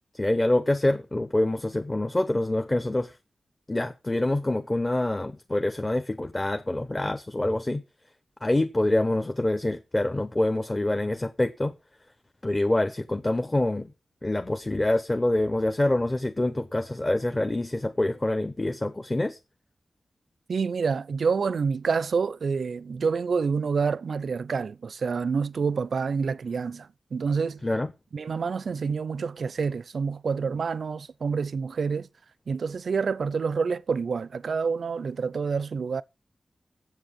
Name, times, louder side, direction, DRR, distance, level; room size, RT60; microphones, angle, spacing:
voice 1, 0.1-3.2 3.7-7.8 8.4-11.7 12.4-13.9 14.2-19.4 27.6-27.9, left 1 dB, 20° left, 1.0 m, -26 dB
voice 2, 20.5-27.6 28.1-32.1 32.5-36.0, right 5 dB, 70° right, 0.5 m, -28 dB
7.9 x 7.9 x 8.4 m
wide cardioid pair, 130°, 0 cm